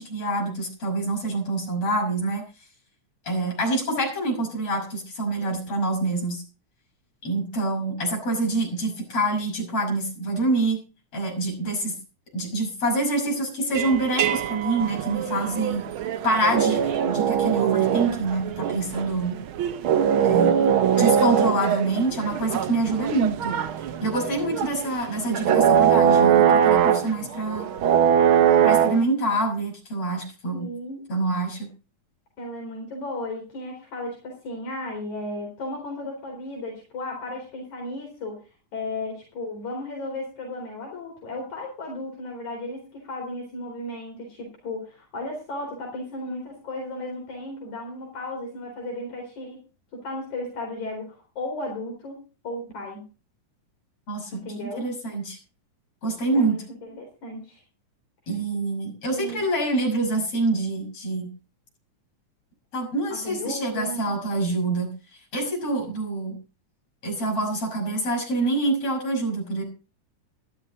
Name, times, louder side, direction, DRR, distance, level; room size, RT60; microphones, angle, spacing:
voice 1, 0.0-2.4 3.3-6.4 7.2-10.8 11.1-12.0 12.3-15.8 16.2-19.4 20.2-20.6 21.0-23.6 24.0-27.7 28.6-30.7 31.1-31.7 54.1-55.4 56.0-56.6 58.3-61.3 62.7-64.9 65.3-66.4 67.0-69.6, right 2 dB, 50° left, 0 dB, 7.0 m, -26 dB
sound 1, 13.7-29.0, right 8 dB, 85° right, 1.1 m, -22 dB
voice 2, 20.4-20.9 30.5-31.1 32.4-38.4 38.7-49.7 49.9-52.2 52.4-53.0 54.4-54.9 56.3-57.6 59.1-59.5 63.2-64.1, left 1 dB, 70° left, 0 dB, 5.6 m, -34 dB
14.0 x 12.0 x 4.0 m, 0.33 s
omnidirectional pair, 3.5 m